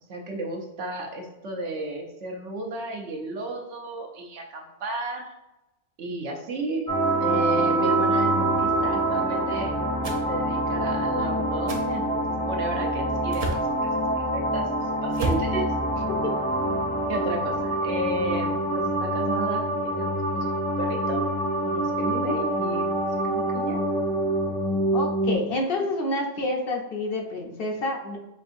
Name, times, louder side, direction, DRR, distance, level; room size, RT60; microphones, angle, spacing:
voice 1, 0.1-5.3 6.0-6.9 7.2-9.7 10.3-15.7 17.1-21.2 21.6-22.9 23.3-23.8, right 2 dB, 75° right, 1 dB, 1.0 m, -33 dB
sound 1, 6.9-25.4, right 1 dB, 5° left, 0.6 m, -25 dB
sound 2, 10.0-10.2 11.7-11.9 13.3-13.7 15.1-15.5, right 2 dB, 45° right, 0.5 m, -30 dB
voice 2, 24.9-28.2, left 2 dB, 60° left, 1 dB, 0.7 m, -28 dB
5.4 x 2.6 x 2.5 m, 0.94 s
omnidirectional pair, 1.2 m